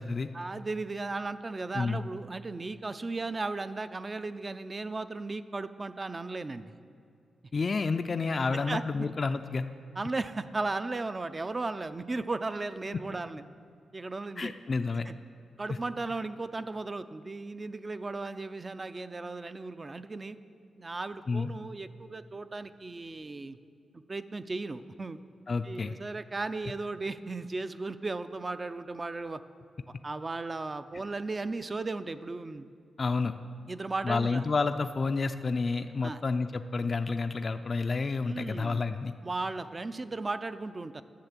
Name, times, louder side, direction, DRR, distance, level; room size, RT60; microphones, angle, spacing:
voice 1, 0.3-6.8 8.5-9.1 10.0-13.4 13.9-14.5 15.1-15.2 15.6-20.4 20.8-23.6 24.1-25.2 25.6-29.4 30.0-32.7 33.7-34.4 36.0-36.2 38.3-38.8 39.2-41.0, right 3 dB, 30° right, 12 dB, 0.4 m, -36 dB
voice 2, 7.5-9.7 14.4-15.1 15.7-15.8 21.3-21.5 25.5-25.9 33.0-33.3 34.0-39.1, left 4 dB, 40° left, 8 dB, 0.4 m, -30 dB
11.0 x 6.8 x 7.3 m, 2.4 s
cardioid pair, 95°, 0 cm